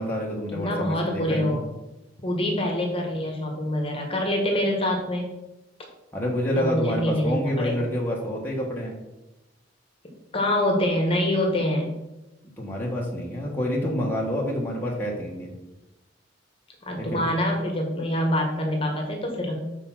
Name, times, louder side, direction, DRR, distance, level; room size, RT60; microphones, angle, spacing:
voice 1, 0.0-1.6 6.1-9.0 12.6-15.5 17.0-17.3, equal, 10° left, -4 dB, 1.3 m, -28 dB
voice 2, 0.5-1.6 2.2-5.3 6.6-7.9 10.3-11.9 16.8-19.6, left 1 dB, 30° left, 1 dB, 1.4 m, -25 dB
6.7 x 4.5 x 6.0 m, 0.98 s
head